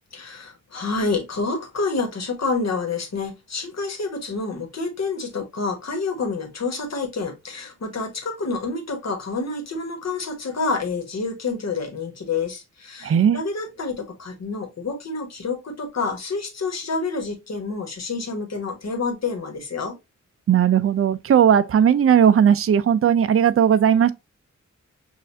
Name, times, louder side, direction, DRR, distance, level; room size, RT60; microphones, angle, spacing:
voice 1, 0.1-20.0, left 4 dB, 60° left, 1.3 m, -28 dB
voice 2, 13.0-13.4 20.5-24.1, right 8 dB, 50° right, 0.4 m, -17 dB
6.4 x 2.5 x 2.6 m
wide cardioid pair, 135°, 30 cm